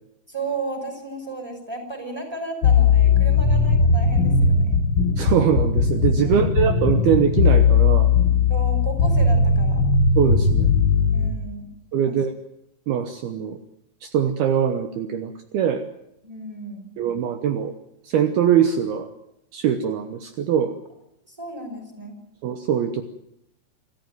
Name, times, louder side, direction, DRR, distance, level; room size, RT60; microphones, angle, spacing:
voice 1, 0.3-4.7 6.2-6.6 8.5-9.8 11.1-11.7 12.1-12.2 16.2-16.9 21.3-22.2, right 2 dB, 5° right, 4 dB, 5.4 m, -34 dB
sound 1, 2.6-11.3, left 4 dB, 45° left, 2.0 m, -18 dB
voice 2, 5.2-8.1 10.2-10.7 11.9-12.3 12.9-13.6 14.0-15.9 17.0-17.7 18.0-19.1 19.5-20.8 22.4-23.0, right 8 dB, 70° right, 8 dB, 2.8 m, -22 dB
26.5 x 14.5 x 9.4 m, 0.81 s
omnidirectional pair, 5.1 m